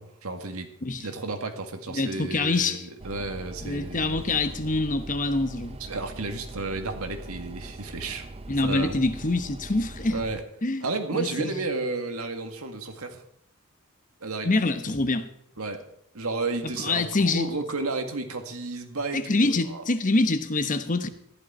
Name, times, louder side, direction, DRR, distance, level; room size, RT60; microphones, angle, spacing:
voice 1, 0.0-0.7 1.0-4.2 5.8-8.3 8.6-9.0 10.1-10.4 10.8-13.2 14.2-14.5 15.6-15.8 16.1-19.8, right 3 dB, 85° right, 1.9 m, -32 dB
voice 2, 1.9-2.9 3.6-5.8 8.5-10.2 10.6-10.8 11.1-11.5 14.4-15.3 16.8-17.5 19.1-21.1, left 2 dB, 35° left, 1.0 m, -25 dB
sound 1, 3.0-10.4, right 2 dB, 25° right, 0.6 m, -41 dB
14.0 x 11.5 x 4.3 m
head